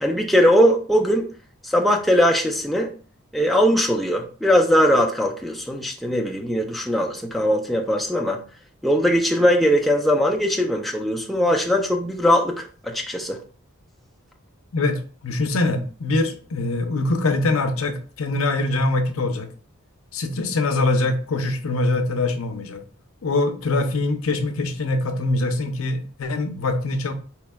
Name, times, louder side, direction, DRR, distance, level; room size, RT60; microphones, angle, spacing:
voice 1, 0.0-1.3 1.6-2.9 3.3-8.4 8.8-13.4, equal, ahead, 0.4 m, -20 dB
voice 2, 14.7-19.5 20.1-22.8 23.2-27.1, left 2 dB, 75° left, 0.6 m, -23 dB
4.5 x 3.0 x 2.2 m
head